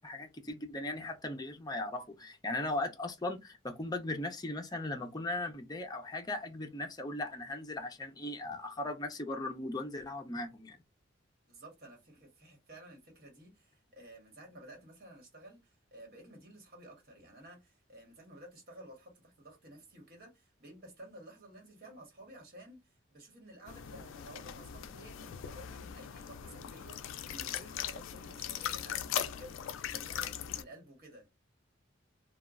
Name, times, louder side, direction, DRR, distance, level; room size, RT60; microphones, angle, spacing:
voice 1, 0.0-10.8, left 2 dB, 20° left, 0.5 m, -38 dB
voice 2, 11.5-31.3, right 1 dB, 50° right, 1.4 m, -53 dB
sound 1, 23.7-30.6, left 9 dB, 80° left, 0.3 m, -40 dB
2.9 x 2.3 x 2.4 m
head